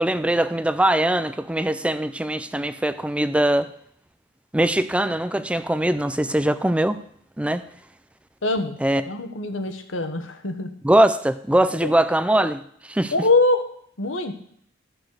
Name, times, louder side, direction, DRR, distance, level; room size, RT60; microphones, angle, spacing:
voice 1, 0.0-3.7 4.5-7.0 7.4-7.6 8.8-9.0 10.8-12.6 12.9-13.1, right 1 dB, 5° right, 12 dB, 0.4 m, -21 dB
voice 2, 8.4-8.8 9.1-10.7 11.8-11.9 13.1-13.6 14.0-14.4, left 2 dB, 75° left, 7 dB, 1.3 m, -23 dB
11.5 x 6.1 x 6.6 m, 0.65 s
head